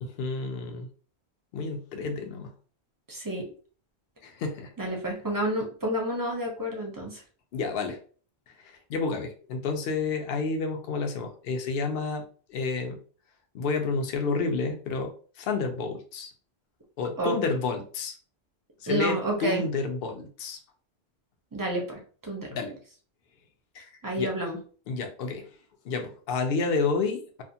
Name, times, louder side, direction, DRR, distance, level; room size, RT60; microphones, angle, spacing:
voice 1, 0.0-0.9 1.5-2.5 4.2-4.7 7.5-8.0 8.6-12.2 12.5-13.0 13.5-16.3 17.0-18.1 18.8-20.6 22.5-22.7 23.7-23.9 24.2-24.3 24.9-25.5 25.8-27.4, left 4 dB, 65° left, 4 dB, 0.7 m, -30 dB
voice 2, 3.1-3.5 4.8-7.2 17.2-17.4 18.9-19.6 21.5-22.6 24.0-24.6, right 1 dB, 25° right, 0 dB, 0.5 m, -30 dB
2.4 x 2.4 x 2.7 m, 0.41 s
omnidirectional pair, 1.1 m